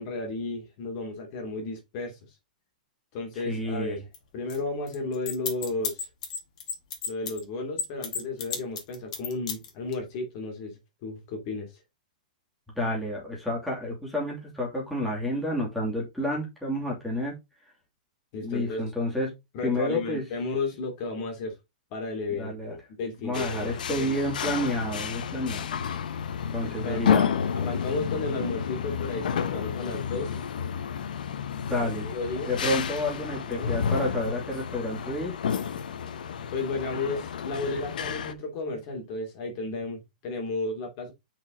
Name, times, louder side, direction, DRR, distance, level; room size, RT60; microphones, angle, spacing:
voice 1, 0.0-2.3 3.1-4.0 4.3-6.1 7.1-11.7 18.3-18.8 19.5-21.6 21.9-24.2 26.8-27.2 27.5-30.4 31.7-32.5 33.3-33.8 36.5-41.1, left 3 dB, 40° left, 2.8 m, -33 dB
voice 2, 3.4-4.0 12.8-17.3 18.4-19.3 19.6-20.2 22.3-22.8 23.2-25.7 26.5-27.3 31.5-32.1 32.5-35.4, left 1 dB, ahead, 3.0 m, -30 dB
sound 1, 4.1-4.2 4.5-4.6 4.9-7.4 7.8-9.9, left 6 dB, 60° left, 2.6 m, -32 dB
sound 2, 23.3-38.3, left 7 dB, 80° left, 1.1 m, -31 dB
5.9 x 5.2 x 3.9 m
hypercardioid pair, 150°, 5 cm